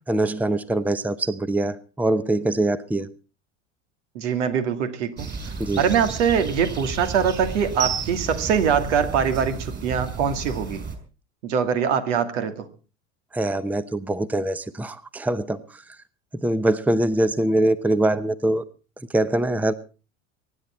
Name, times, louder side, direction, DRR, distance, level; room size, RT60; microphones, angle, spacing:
voice 1, 0.1-3.1 5.6-6.0 13.3-15.8 16.3-18.6 19.1-19.7, right 1 dB, 5° right, 16 dB, 0.8 m, -23 dB
voice 2, 4.1-10.8 11.4-12.7, right 7 dB, 70° right, 8 dB, 2.3 m, -23 dB
sound 1, 5.2-11.0, right 5 dB, 30° right, 5.1 m, -32 dB
24.0 x 10.5 x 4.4 m, 0.36 s
hypercardioid pair, 75°, 38 cm